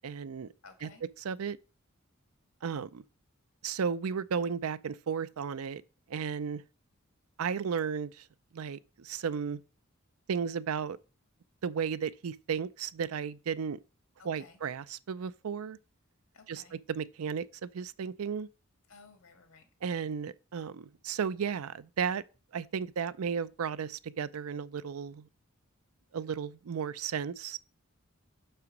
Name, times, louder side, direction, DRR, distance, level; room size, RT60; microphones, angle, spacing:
voice 1, 0.0-0.5 0.8-0.9 1.2-1.6 2.6-3.0 3.6-5.8 6.1-6.6 7.4-8.2 8.5-9.6 10.3-11.0 11.6-13.8 14.3-15.8 16.5-16.6 16.9-18.5 19.8-22.2 22.5-25.2 26.1-27.6, right 6 dB, 90° right, 0.4 m, -34 dB
voice 2, 0.6-1.0 14.2-14.6 16.3-16.8 18.9-19.6, left 4 dB, 85° left, 1.9 m, -55 dB
6.0 x 5.6 x 5.2 m
head